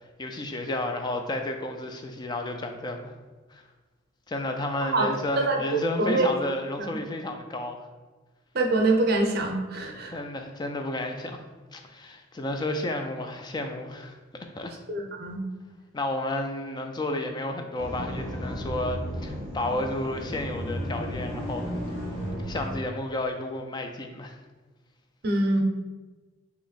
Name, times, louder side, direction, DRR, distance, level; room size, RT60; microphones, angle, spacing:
voice 1, 0.2-3.1 3.5-3.6 4.3-7.8 10.1-11.4 11.7-14.2 14.6-14.7 15.9-21.7 22.4-24.4, left 1 dB, 20° left, 5 dB, 0.4 m, -32 dB
voice 2, 5.5-6.3 8.5-10.1 14.9-15.4 25.2-25.6, right 2 dB, 50° right, 2 dB, 0.6 m, -24 dB
sound 1, 17.8-22.7, equal, 75° left, 1.4 m, -33 dB
3.5 x 3.0 x 4.0 m, 1.3 s
head